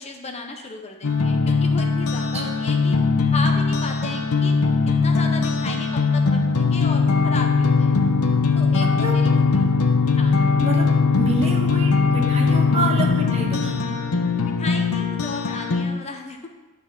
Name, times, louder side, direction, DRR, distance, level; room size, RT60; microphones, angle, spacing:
voice 1, 0.0-3.0 3.3-4.6 5.0-8.0 8.5-9.7 10.2-10.5 14.4-16.5, left 3 dB, 30° left, 3 dB, 0.7 m, -34 dB
sound 1, 1.0-15.8, left 4 dB, 90° left, 0.7 m, -20 dB
voice 2, 8.8-9.2 10.6-13.8, right 2 dB, 30° right, 1 dB, 1.2 m, -28 dB
9.6 x 4.1 x 6.7 m, 1.2 s
head